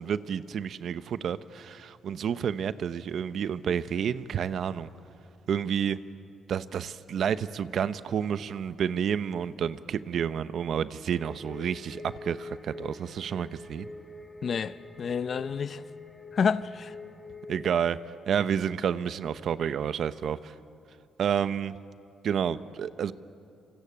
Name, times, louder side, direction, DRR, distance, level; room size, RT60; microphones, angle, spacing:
voice 1, 0.0-4.9 5.5-6.0 6.5-13.9 17.5-18.0 18.3-20.5 21.2-21.7 22.2-23.1, right 8 dB, 65° right, 0.8 m, -30 dB
sound 1, 11.1-18.1, left 2 dB, 10° left, 5.1 m, -45 dB
voice 2, 14.4-15.8 16.3-16.9, left 6 dB, 50° left, 0.7 m, -29 dB
27.0 x 25.0 x 8.7 m
cardioid pair, 90°, 0 cm